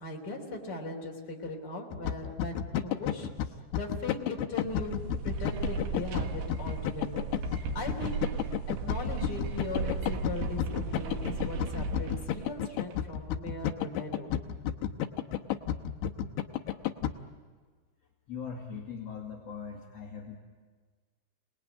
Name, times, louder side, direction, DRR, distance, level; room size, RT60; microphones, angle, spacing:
voice 1, 0.0-3.3 3.7-7.3 7.6-8.2 8.7-14.3, left 2 dB, 25° left, 0 dB, 3.2 m, -39 dB
sound 1, 1.9-17.1, left 10 dB, 75° left, 2.5 m, -32 dB
sound 2, 4.6-13.1, right 4 dB, 75° right, 3.8 m, -36 dB
voice 2, 18.3-20.4, left 6 dB, 45° left, -2 dB, 2.3 m, -40 dB
28.5 x 20.0 x 9.3 m, 1.5 s
omnidirectional pair, 5.6 m